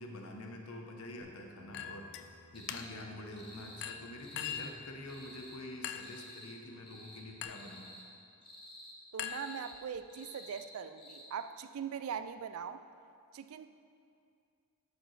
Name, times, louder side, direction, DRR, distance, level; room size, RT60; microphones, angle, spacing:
voice 1, 0.0-8.0, left 1 dB, 70° left, 2 dB, 0.8 m, -47 dB
Bass guitar, 1.2-6.0 6.3-7.4, left 2 dB, 20° right, 1.6 m, -64 dB
Chink clink, 1.7-2.3 2.7-3.1 3.8-4.8 5.8-6.2 7.4-7.7 9.2-10.0, left 9 dB, 55° left, 0.3 m, -42 dB
sound 1, 2.5-2.9 3.3-3.9 4.2-4.7 5.0-5.6 5.9-6.6 6.8-7.2 7.5-8.0 8.4-8.9 9.3-9.8 10.1-10.7 11.0-11.2, left 1 dB, 25° left, 1.1 m, -52 dB
voice 2, 9.1-12.8 13.3-13.7, right 7 dB, 70° right, 11 dB, 0.3 m, -41 dB
11.5 x 5.1 x 3.2 m, 2.4 s
head